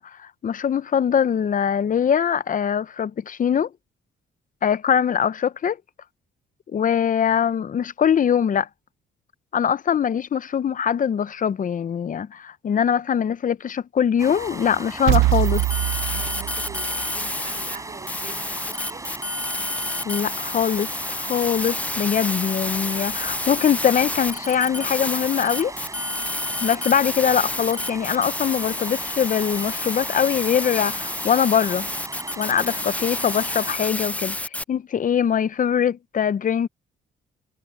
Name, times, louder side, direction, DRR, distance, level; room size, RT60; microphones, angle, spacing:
voice 1, 0.0-3.7 4.6-5.8 6.7-8.7 9.5-15.7 20.0-25.7 26.6-31.9 32.4-34.4 34.7-36.7, left 8 dB, 40° left, 0.7 m, -22 dB
sound 1, 14.2-33.8, right 2 dB, 15° right, 6.4 m, -37 dB
sound 2, 15.1-17.1, right 18 dB, 85° right, 0.6 m, -22 dB
sound 3, 15.6-17.8 18.1-34.6, left 2 dB, 5° left, 0.4 m, -29 dB
voice 2, 16.1-19.2 32.5-33.0, right 5 dB, 40° right, 3.6 m, -44 dB
cardioid pair, 90°, 20 cm